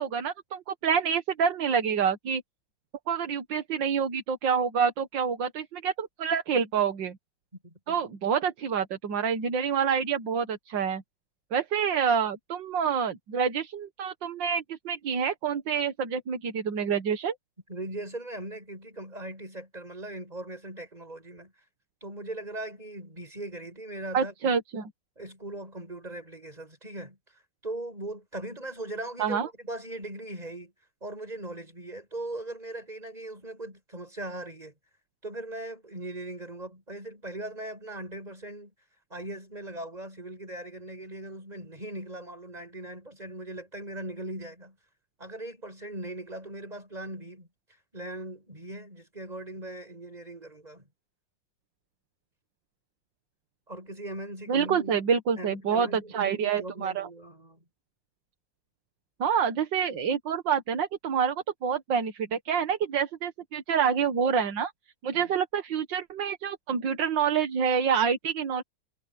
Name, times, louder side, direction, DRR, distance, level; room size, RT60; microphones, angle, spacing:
voice 1, 0.0-2.4 3.1-7.2 7.9-11.0 11.5-17.4 24.1-24.9 29.2-29.5 54.5-57.1 59.2-64.7 65.0-68.6, right 7 dB, 75° right, 2.1 m, -27 dB
voice 2, 7.6-8.0 17.7-21.5 22.0-24.5 25.2-30.7 31.0-34.7 35.2-38.7 39.1-44.8 45.2-47.5 47.9-50.9 53.7-54.9 55.4-57.6 65.1-65.3, right 1 dB, 20° right, 7.8 m, -39 dB
omnidirectional pair, 2.0 m